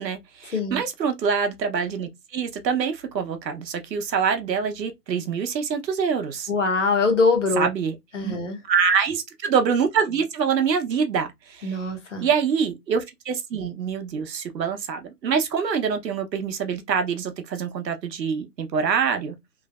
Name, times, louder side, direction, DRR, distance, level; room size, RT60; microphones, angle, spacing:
voice 1, 0.0-6.5 7.6-8.0 8.2-8.3 8.7-11.8 12.2-19.4, right 6 dB, 85° right, 0.9 m, -25 dB
voice 2, 6.5-7.7 8.1-8.6 11.6-12.3, left 3 dB, 50° left, 0.9 m, -23 dB
3.2 x 2.0 x 2.3 m
hypercardioid pair, 175°, 49 cm